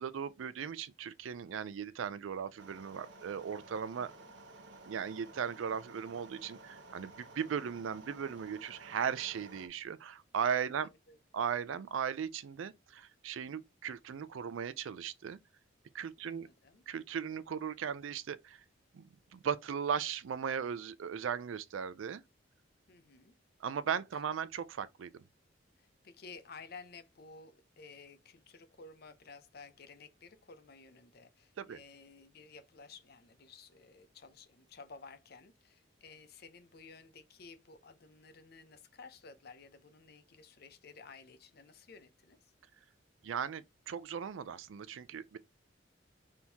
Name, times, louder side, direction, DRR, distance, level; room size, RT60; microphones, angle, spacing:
voice 1, 0.0-4.1 4.9-10.9 11.3-15.4 15.9-16.5 16.9-18.6 18.9-19.0 19.3-22.2 23.6-25.2 31.6-31.8 43.2-45.4, right 7 dB, 85° right, 0.4 m, -37 dB
sound 1, 2.6-9.7, right 2 dB, 65° right, 0.9 m, -54 dB
voice 2, 10.7-11.2 16.2-16.9 22.9-23.3 25.8-42.5, left 4 dB, 55° left, 0.6 m, -54 dB
4.4 x 3.6 x 2.8 m
head